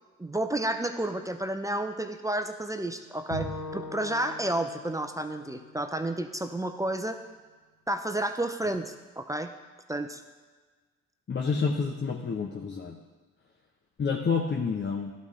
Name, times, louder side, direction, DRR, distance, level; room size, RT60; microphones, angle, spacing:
voice 1, 0.2-7.2 7.9-9.5 9.9-10.2, right 1 dB, 10° right, 7 dB, 0.5 m, -31 dB
Bowed string instrument, 3.3-6.6, left 1 dB, 85° left, 1.7 m, -41 dB
voice 2, 11.3-13.0 14.0-15.1, left 5 dB, 30° left, 1 dB, 0.8 m, -29 dB
12.5 x 4.2 x 3.7 m, 1.4 s
hypercardioid pair, 50°, 39 cm